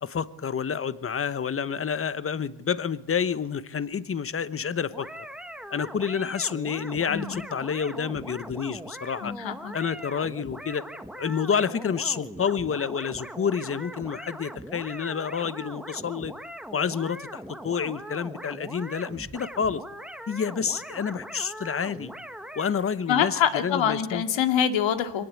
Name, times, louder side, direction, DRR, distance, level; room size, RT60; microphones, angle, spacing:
voice 1, 0.0-5.3 5.7-9.3 9.7-10.8 11.1-16.3 16.7-19.8 20.3-22.1 22.5-24.2, left 7 dB, 30° left, 15 dB, 1.1 m, -29 dB
sound 1, 4.9-22.7, equal, ahead, 1.4 m, -41 dB
voice 2, 7.1-7.4 9.2-9.7 23.1-25.2, left 8 dB, 85° left, 7 dB, 2.5 m, -25 dB
24.5 x 19.0 x 8.5 m, 0.83 s
cardioid pair, 140°, 44 cm